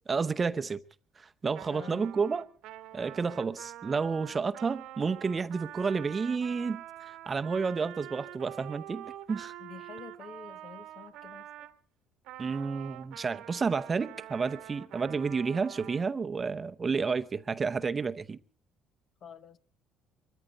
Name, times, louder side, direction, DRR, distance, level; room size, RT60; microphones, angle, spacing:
voice 1, 0.1-0.8 1.2-2.4 2.9-9.5 12.4-18.4, right 5 dB, 30° right, 0.7 m, -31 dB
Trumpet, 1.5-11.7 12.2-16.0, right 13 dB, 80° right, 1.2 m, -46 dB
voice 2, 1.7-2.1 9.6-11.7 19.2-19.6, left 7 dB, 50° left, 1.0 m, -48 dB
24.0 x 14.0 x 4.0 m
cardioid pair, 100°, 0 cm